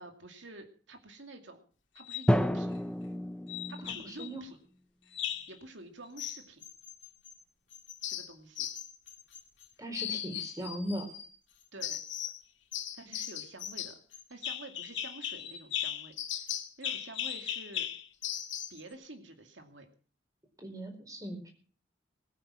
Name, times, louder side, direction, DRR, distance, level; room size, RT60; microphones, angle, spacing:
voice 1, 0.0-1.6 1.9-2.7 3.7-4.6 5.5-6.6 8.1-8.7 11.7-12.0 12.9-16.5 16.8-17.9 18.7-19.9, right 2 dB, 80° right, 6 dB, 2.4 m, -49 dB
sound 1, 2.0-2.3 3.5-4.3 5.1-5.6 6.2-7.4 7.7-9.7 9.9-11.3 11.8-12.4 12.7-18.8, left 10 dB, 80° left, 2.3 m, -38 dB
Drum, 2.3-4.2, equal, 5° left, 0.7 m, -30 dB
voice 2, 4.0-4.4 9.8-11.1 20.6-21.5, equal, 20° right, 4 dB, 4.5 m, -38 dB
20.5 x 9.1 x 6.3 m, 0.42 s
head